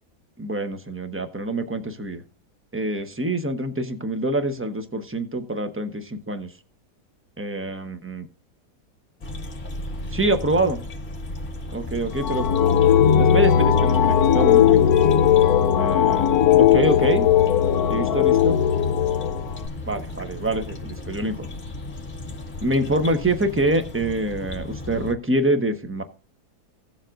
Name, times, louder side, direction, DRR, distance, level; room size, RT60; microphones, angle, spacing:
voice 1, 0.4-2.2 2.7-6.5 7.4-8.3 10.1-10.8 11.7-12.4 13.2-14.8 15.8-16.3 16.6-17.3 17.9-18.6 19.9-21.5 22.6-26.0, right 1 dB, 10° right, 7 dB, 0.7 m, -25 dB
sound 1, 9.2-25.1, left 2 dB, 30° left, 1.4 m, -35 dB
sound 2, 12.1-19.7, left 9 dB, 70° left, 1.1 m, -18 dB
17.5 x 7.3 x 2.5 m, 0.39 s
omnidirectional pair, 1.8 m